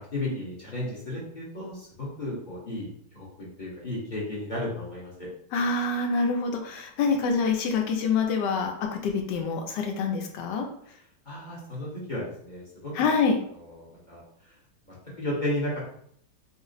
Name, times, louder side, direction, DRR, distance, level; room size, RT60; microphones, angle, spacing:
voice 1, 0.0-5.3 11.2-12.9 13.5-14.5 14.9-15.8, left 1 dB, 35° left, -6 dB, 0.9 m, -34 dB
voice 2, 5.5-10.7 12.9-13.4, left 4 dB, 80° left, 3 dB, 1.2 m, -26 dB
4.2 x 2.0 x 3.9 m, 0.65 s
omnidirectional pair, 1.9 m